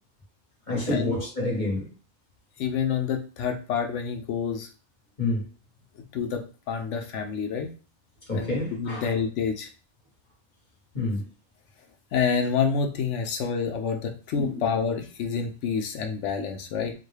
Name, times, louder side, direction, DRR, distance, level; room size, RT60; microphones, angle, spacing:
voice 1, 0.7-1.9 5.2-5.5 8.3-9.1 10.9-11.3 14.4-14.6, left 2 dB, 40° left, 1.4 m, -28 dB
voice 2, 2.6-4.7 6.1-7.7 8.3-9.7 12.1-16.9, left 6 dB, 75° left, 0.9 m, -28 dB
3.8 x 2.2 x 3.2 m
omnidirectional pair, 1.3 m